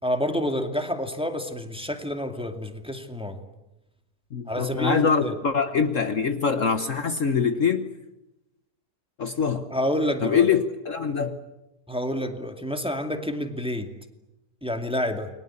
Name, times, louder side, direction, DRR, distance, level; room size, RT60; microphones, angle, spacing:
voice 1, 0.0-3.4 4.5-5.4 9.7-10.5 11.9-13.9 14.6-15.3, equal, 5° right, 5 dB, 2.3 m, -28 dB
voice 2, 4.3-7.9 9.2-9.7 10.2-11.4, left 6 dB, 55° left, 9 dB, 1.5 m, -24 dB
29.5 x 23.0 x 8.6 m, 0.95 s
omnidirectional pair, 1.7 m